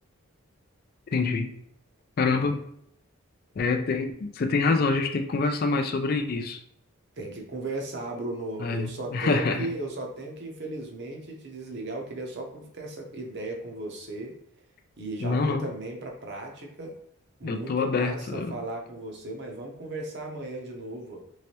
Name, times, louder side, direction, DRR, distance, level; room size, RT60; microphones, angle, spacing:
voice 1, 1.1-1.5 2.2-2.6 3.6-6.6 8.6-9.7 15.2-15.7 17.4-18.6, left 4 dB, 45° left, 6 dB, 0.3 m, -26 dB
voice 2, 2.2-2.5 7.2-14.3 15.0-17.0 17.4-21.2, right 2 dB, 50° right, 1 dB, 0.7 m, -36 dB
3.3 x 3.1 x 2.9 m, 0.72 s
head